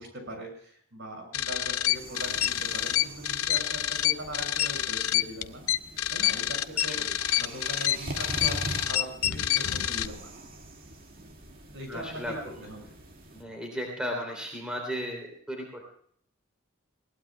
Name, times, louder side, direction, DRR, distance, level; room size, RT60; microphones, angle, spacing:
voice 1, 0.0-5.7 6.1-7.0 7.4-10.3 11.7-12.4 12.6-12.9, right 1 dB, 60° right, 3 dB, 6.3 m, -41 dB
sound 1, 1.3-10.0, left 12 dB, 80° left, 0.7 m, -27 dB
sound 2, 1.9-13.4, right 1 dB, 40° right, 2.1 m, -43 dB
voice 2, 6.8-7.2 11.8-12.7 13.4-15.8, equal, 5° right, 0 dB, 3.2 m, -36 dB
20.5 x 18.5 x 2.3 m, 0.62 s
head